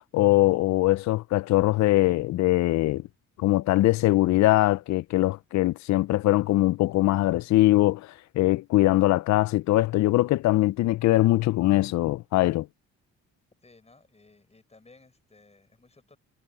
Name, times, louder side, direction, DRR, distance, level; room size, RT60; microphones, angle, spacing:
voice 1, 0.1-3.0 3.4-12.7, left 17 dB, 65° left, 0.5 m, -22 dB
voice 2, 13.6-16.2, left 3 dB, 20° left, 6.1 m, -57 dB
cardioid pair, 90°, 30 cm